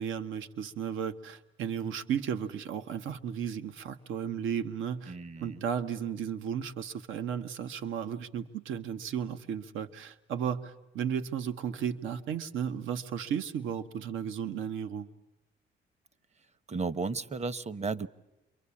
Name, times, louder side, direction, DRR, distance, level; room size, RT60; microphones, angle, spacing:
voice 1, 0.0-5.1 5.4-15.1, right 8 dB, 85° right, 10 dB, 1.2 m, -34 dB
voice 2, 5.1-5.6 16.7-18.1, right 4 dB, 35° right, 18 dB, 1.0 m, -34 dB
28.5 x 23.5 x 8.5 m, 0.96 s
cardioid pair, 90°, 20 cm